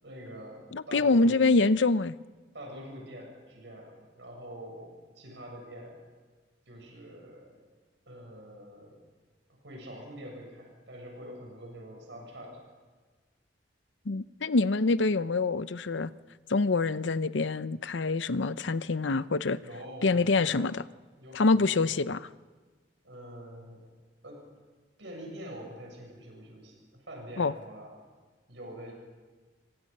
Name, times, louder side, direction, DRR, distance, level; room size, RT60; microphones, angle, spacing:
voice 1, 0.0-1.3 2.5-6.0 6.7-7.7 8.1-9.0 9.6-12.6 19.6-20.6 21.2-21.8 23.0-23.8 24.2-24.4 25.0-27.9 28.5-28.9, equal, 75° right, 7.5 m, -45 dB
voice 2, 0.7-2.1 14.1-16.1 16.5-19.6 20.0-20.8 21.3-22.3 27.4-27.5, left 3 dB, 75° left, 0.7 m, -25 dB
27.5 x 24.5 x 5.5 m
head